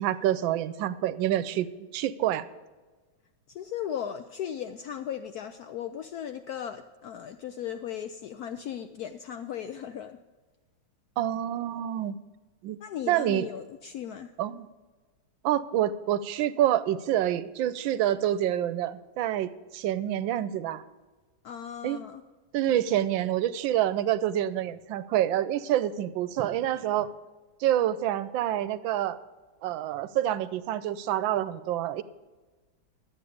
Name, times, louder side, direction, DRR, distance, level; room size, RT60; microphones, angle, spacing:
voice 1, 0.0-1.7 1.9-2.5 11.2-12.1 12.6-12.8 13.1-13.5 14.4-14.7 15.4-20.8 21.8-22.0 22.5-27.1 27.6-29.2 29.6-32.0, right 12 dB, 75° right, 15 dB, 1.3 m, -27 dB
voice 2, 3.5-10.2 12.8-14.3 21.4-22.2, left 9 dB, 80° left, 8 dB, 0.8 m, -37 dB
12.5 x 8.4 x 5.0 m, 1.3 s
omnidirectional pair, 2.2 m